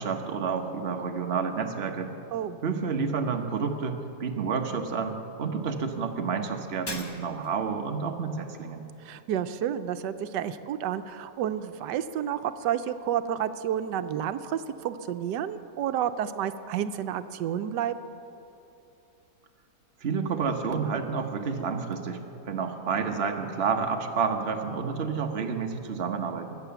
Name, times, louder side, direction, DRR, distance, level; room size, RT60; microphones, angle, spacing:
voice 1, 0.0-2.1 2.6-8.9 20.0-22.2 22.5-26.6, right 5 dB, 40° right, 4 dB, 1.1 m, -30 dB
Shatter, 6.9-7.7, left 1 dB, 15° left, 1.0 m, -38 dB
voice 2, 9.0-18.0, right 10 dB, 90° right, 11 dB, 1.2 m, -30 dB
22.5 x 8.4 x 6.9 m, 2.8 s
omnidirectional pair, 1.8 m